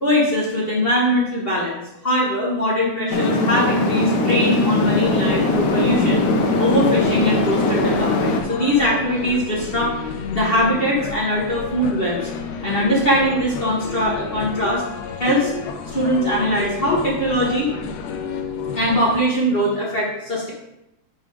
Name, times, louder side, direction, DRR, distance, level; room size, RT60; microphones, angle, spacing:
voice 1, 0.0-6.3 6.6-9.9 10.3-12.3 12.6-14.8 15.2-15.5 15.9-17.7 18.5-20.5, equal, 45° left, -4 dB, 0.7 m, -21 dB
sound 1, 3.1-8.4, left 2 dB, 90° left, 2.5 m, -20 dB
sound 2, 4.8-19.2, left 6 dB, 75° left, 1.6 m, -31 dB
10.0 x 4.0 x 4.9 m, 0.85 s
omnidirectional pair, 3.5 m